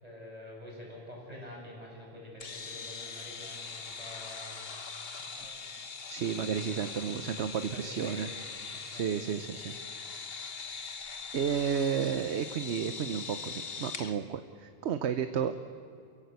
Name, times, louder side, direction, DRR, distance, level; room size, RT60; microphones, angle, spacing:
voice 1, 0.0-4.9 5.2-5.8 6.4-7.2 7.5-8.4 8.7-9.4, left 1 dB, 35° right, -3 dB, 6.5 m, -48 dB
sound 1, 2.4-14.1, left 5 dB, 60° left, 1.4 m, -41 dB
voice 2, 6.1-8.3 8.9-9.7 11.3-15.5, right 8 dB, 80° right, 10 dB, 1.1 m, -32 dB
28.5 x 16.0 x 8.2 m, 2.5 s
omnidirectional pair, 1.1 m